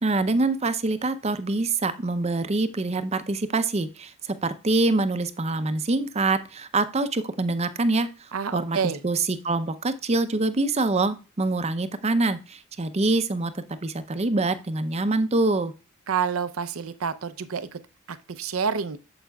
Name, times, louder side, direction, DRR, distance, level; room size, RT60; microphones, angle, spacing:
voice 1, 0.0-8.1 8.5-8.8 9.0-15.7, right 2 dB, 30° right, 12 dB, 0.6 m, -25 dB
voice 2, 8.3-9.0 16.1-17.8 18.1-19.0, right 6 dB, 80° right, 13 dB, 0.6 m, -28 dB
8.9 x 7.3 x 2.3 m, 0.32 s
head